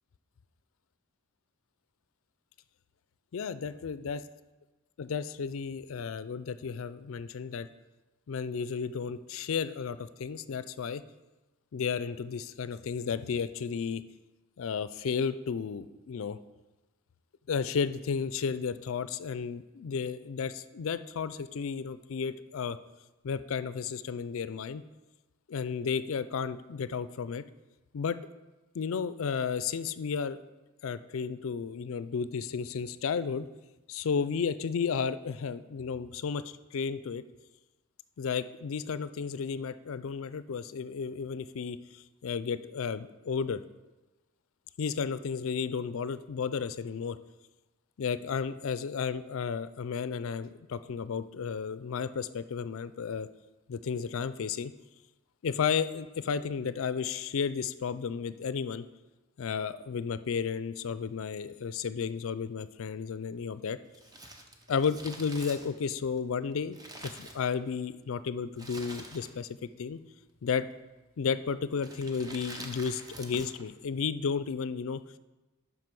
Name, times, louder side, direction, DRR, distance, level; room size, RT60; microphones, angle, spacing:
voice 1, 3.3-4.2 5.0-7.7 8.3-11.0 11.7-14.0 14.6-16.4 17.5-22.8 23.2-24.8 25.5-27.4 27.9-28.2 28.7-30.4 30.8-33.5 33.9-37.2 38.2-43.6 44.8-47.2 48.0-53.3 53.7-54.7 55.4-58.8 59.4-63.8 64.7-69.5 69.8-70.0 70.4-70.7 71.2-75.0, left 6 dB, 70° left, 14 dB, 0.4 m, -33 dB
Crumpling crinkling, 63.9-67.9 68.5-69.6 69.8-69.9 70.8-71.1 71.8-73.7 73.9-74.0, right 1 dB, 15° right, 0.7 m, -46 dB
7.7 x 6.1 x 5.3 m, 1.1 s
head